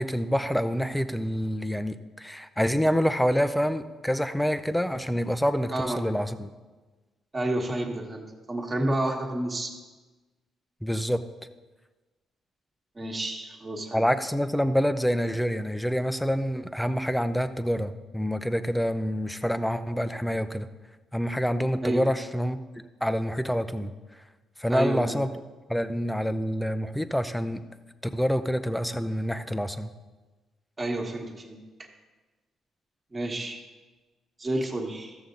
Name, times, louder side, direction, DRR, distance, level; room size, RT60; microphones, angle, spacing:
voice 1, 0.0-6.5 10.8-11.2 13.9-20.7 21.1-22.6 23.0-23.9 24.6-25.3 25.7-27.6 28.1-29.9, equal, 5° left, 10 dB, 0.6 m, -27 dB
voice 2, 7.3-9.7 13.0-14.0 21.8-22.0 24.7-25.2 30.8-31.6 33.1-33.6 34.4-35.2, right 1 dB, 25° right, 0 dB, 1.5 m, -30 dB
14.0 x 7.0 x 3.9 m, 1.3 s
cardioid pair, 90°, 0 cm